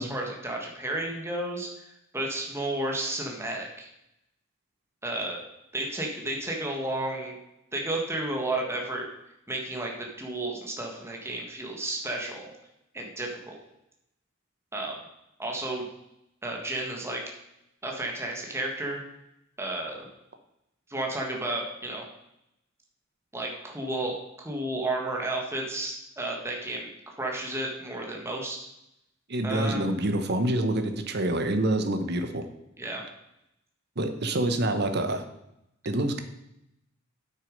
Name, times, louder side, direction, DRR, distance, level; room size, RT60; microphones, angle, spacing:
voice 1, 0.0-3.9 5.0-5.4 5.7-7.4 7.7-9.1 9.5-12.5 12.9-13.6 14.7-15.0 15.4-15.8 16.4-17.2 17.8-19.0 19.6-20.1 20.9-22.0 23.3-26.9 27.2-28.7 29.4-29.9 32.8-33.0, right 2 dB, 15° right, 0 dB, 1.5 m, -32 dB
voice 2, 29.3-32.4 34.0-35.2 35.8-36.2, right 1 dB, 55° right, 7 dB, 1.0 m, -26 dB
8.7 x 6.6 x 5.3 m, 0.83 s
head